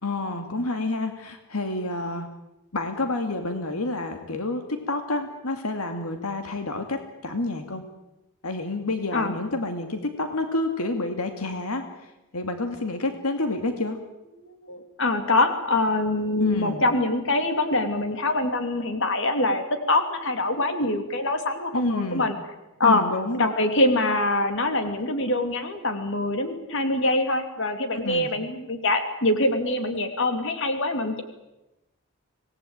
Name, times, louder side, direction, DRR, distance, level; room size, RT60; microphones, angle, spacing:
voice 1, 0.0-2.3 2.7-7.9 8.4-14.0 16.4-16.8 21.7-22.3 22.8-23.5 27.9-28.3, left 2 dB, 80° left, 6 dB, 2.4 m, -29 dB
voice 2, 14.5-22.4 22.8-23.0 23.3-31.2, left 2 dB, 60° left, 7 dB, 2.8 m, -24 dB
26.0 x 19.5 x 8.9 m, 0.96 s
head